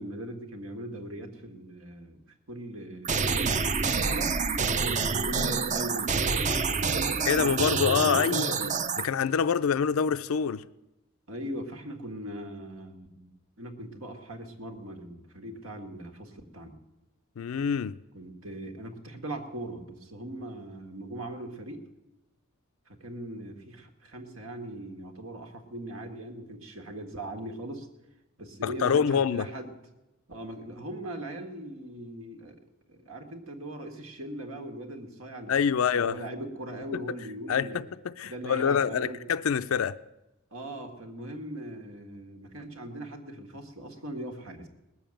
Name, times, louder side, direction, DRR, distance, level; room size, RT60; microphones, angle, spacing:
voice 1, 0.0-2.2 2.5-3.2 3.8-4.3 5.0-8.8 11.3-16.8 18.1-21.9 22.9-27.9 28.4-29.7 30.3-32.6 32.9-35.6 35.9-37.9 38.2-39.2 40.5-44.7, right 1 dB, 80° right, 5 dB, 1.9 m, -40 dB
sound 1, 3.0-9.1, right 5 dB, 35° right, 0.6 m, -27 dB
voice 2, 7.3-8.5 9.0-10.6 17.4-18.0 28.6-29.5 35.5-36.2 36.9-37.0 37.5-40.0, left 7 dB, 80° left, 15 dB, 0.4 m, -26 dB
19.5 x 7.2 x 8.9 m, 0.97 s
head